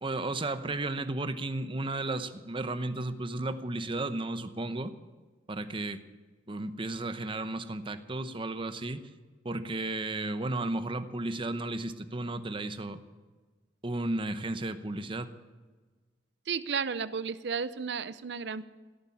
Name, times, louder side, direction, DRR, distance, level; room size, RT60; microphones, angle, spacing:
voice 1, 0.0-4.9 5.5-6.0 6.5-9.1 9.4-13.0 13.8-15.3, right 2 dB, 30° right, 11 dB, 0.8 m, -34 dB
voice 2, 16.5-18.6, right 6 dB, 65° right, 15 dB, 0.6 m, -33 dB
17.5 x 8.9 x 8.5 m, 1.4 s
head